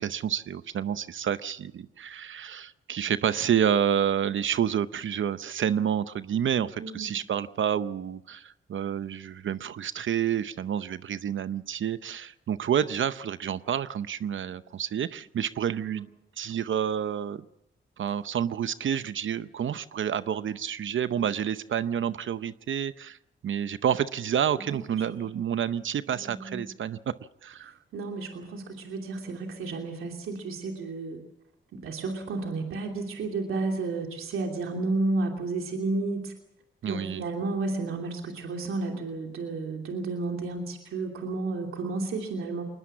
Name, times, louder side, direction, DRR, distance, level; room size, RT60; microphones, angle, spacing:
voice 1, 0.0-16.1 16.4-17.4 18.0-23.2 23.4-27.1 27.4-27.8 36.8-37.2, right 9 dB, 70° right, 13 dB, 0.7 m, -29 dB
voice 2, 6.8-7.2 15.8-16.0 24.7-25.3 26.1-26.6 27.9-31.2 31.7-36.3 36.9-42.6, right 3 dB, 90° right, 2 dB, 3.0 m, -32 dB
21.5 x 20.0 x 7.5 m, 0.87 s
cardioid pair, 65°, 21 cm